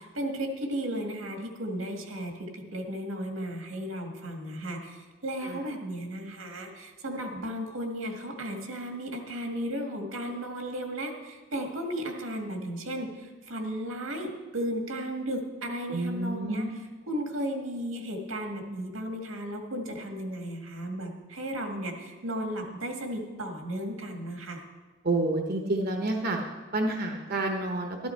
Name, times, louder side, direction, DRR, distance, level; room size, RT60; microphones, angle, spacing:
voice 1, 0.0-24.7, equal, 85° right, 3 dB, 1.9 m, -35 dB
voice 2, 15.9-16.7 25.0-26.4 26.7-28.0, right 2 dB, 50° right, 3 dB, 1.0 m, -29 dB
12.5 x 12.0 x 4.5 m, 1.3 s
head